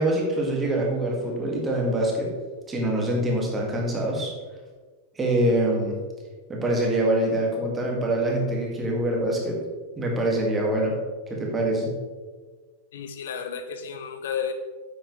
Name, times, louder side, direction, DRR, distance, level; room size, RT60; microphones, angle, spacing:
voice 1, 0.0-2.3 2.7-4.3 5.2-6.0 6.5-9.6 10.0-11.0 11.3-11.9, right 1 dB, 15° right, -1 dB, 2.5 m, -24 dB
voice 2, 12.9-14.5, left 7 dB, 60° left, 8 dB, 0.7 m, -32 dB
9.9 x 8.0 x 3.5 m, 1.4 s
figure-of-eight pair, 90°, 0 cm